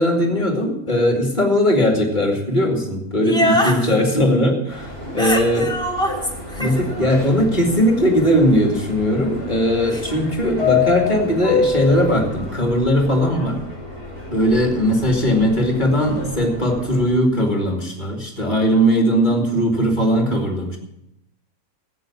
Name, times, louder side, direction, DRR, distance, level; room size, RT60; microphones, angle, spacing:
voice 1, 0.0-5.7 6.6-13.6 14.3-20.8, equal, 30° left, 1 dB, 2.5 m, -19 dB
voice 2, 3.2-3.9 5.2-6.2 6.5-6.7 9.9-10.0, left 1 dB, 5° left, -3 dB, 2.8 m, -22 dB
Subway metro underground, 4.7-17.1, left 5 dB, 80° right, 5.1 m, -28 dB
14.0 x 8.5 x 7.0 m, 0.83 s
omnidirectional pair, 1.6 m